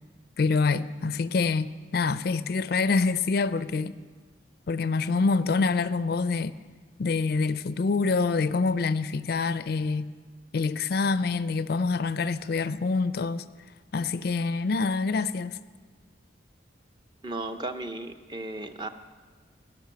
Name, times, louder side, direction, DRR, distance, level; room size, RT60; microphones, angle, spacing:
voice 1, 0.4-3.9 4.7-6.5 7.0-10.1 10.5-13.4 13.9-15.6, left 4 dB, 55° left, 0.4 m, -26 dB
voice 2, 17.2-18.9, right 2 dB, 25° right, 0.6 m, -35 dB
17.5 x 6.0 x 9.0 m
head